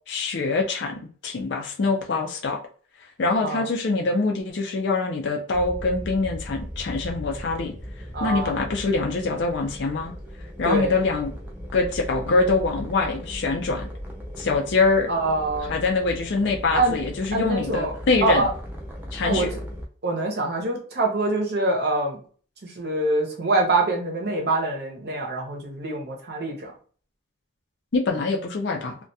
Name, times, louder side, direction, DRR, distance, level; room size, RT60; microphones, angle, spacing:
voice 1, 0.1-2.6 3.2-7.7 8.2-10.1 10.6-11.3 11.7-13.9 14.4-15.1 15.6-18.5 19.1-19.5 27.9-29.0, left 3 dB, 60° left, 2 dB, 0.4 m, -24 dB
sound 1, 5.5-19.9, equal, 10° right, 0.3 m, -37 dB
voice 2, 8.1-8.5 10.6-10.9 15.1-15.8 16.7-17.0 17.3-17.9 18.2-18.5 19.2-19.5 20.0-22.2 22.8-26.7, right 2 dB, 50° right, 0 dB, 0.6 m, -24 dB
2.2 x 2.1 x 2.6 m, 0.43 s
head